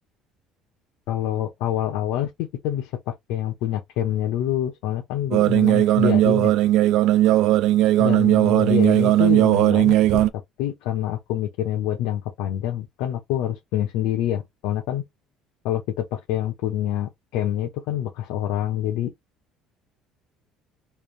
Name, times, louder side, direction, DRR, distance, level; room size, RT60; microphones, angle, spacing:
voice 1, 1.1-6.5 8.0-10.2 10.6-15.0 15.6-19.1, left 11 dB, 80° left, 1.0 m, -26 dB
sound 1, 5.3-10.3, right 14 dB, 65° right, 0.4 m, -18 dB
3.5 x 2.7 x 3.3 m
cardioid pair, 155°, 0 cm